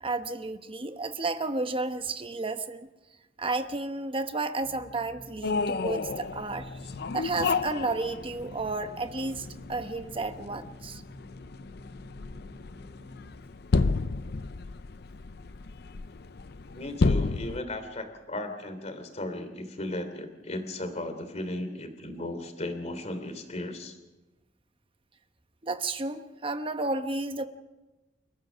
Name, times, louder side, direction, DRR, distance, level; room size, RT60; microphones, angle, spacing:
voice 1, 0.0-2.9 3.4-6.7 7.1-11.0 25.6-27.5, right 3 dB, 30° right, 9 dB, 1.0 m, -32 dB
sound 1, 4.6-13.3, left 2 dB, 15° right, 4.7 m, -49 dB
sound 2, 5.4-17.6, left 3 dB, 60° left, 0.6 m, -32 dB
voice 2, 16.7-24.0, left 1 dB, 40° left, 7 dB, 3.0 m, -36 dB
29.5 x 14.0 x 6.3 m, 1.1 s
head